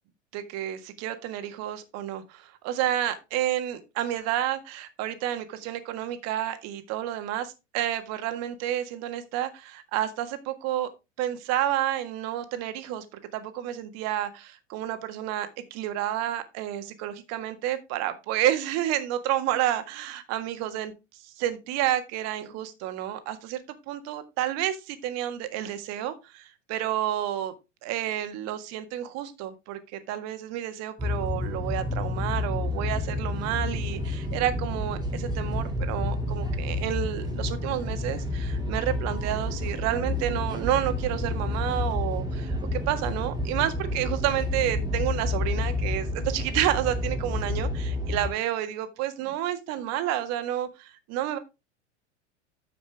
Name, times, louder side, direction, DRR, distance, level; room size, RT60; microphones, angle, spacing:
voice 1, 0.3-10.9 11.2-13.0 13.3-20.9 21.2-23.6 23.9-27.5 27.8-51.4, right 12 dB, 45° right, 10 dB, 1.6 m, -30 dB
sound 1, 31.0-48.3, left 2 dB, 10° right, 1.9 m, -30 dB
9.9 x 7.0 x 3.4 m, 0.25 s
figure-of-eight pair, 90°, 36 cm